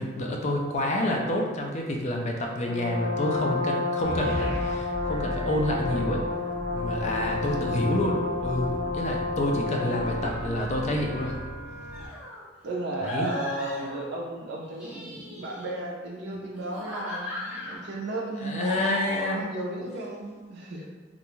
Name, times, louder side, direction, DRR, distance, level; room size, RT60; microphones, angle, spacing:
voice 1, 0.0-6.3 6.7-11.4 13.1-13.3 18.4-19.5 20.7-20.9, left 1 dB, 40° left, 0 dB, 0.4 m, -28 dB
Brass instrument, 2.6-10.4, left 3 dB, 85° left, 0.7 m, -30 dB
sound 1, 4.0-12.1, equal, 55° left, 1.1 m, -37 dB
voice 2, 7.4-7.9 9.8-10.5 12.6-20.9, right 2 dB, 65° right, -1 dB, 0.5 m, -35 dB
sound 2, 11.9-12.4 13.0-14.2 14.6-15.9 16.5-17.8 18.6-19.4, left 1 dB, 5° right, 0.7 m, -38 dB
2.5 x 2.2 x 3.0 m, 1.3 s
head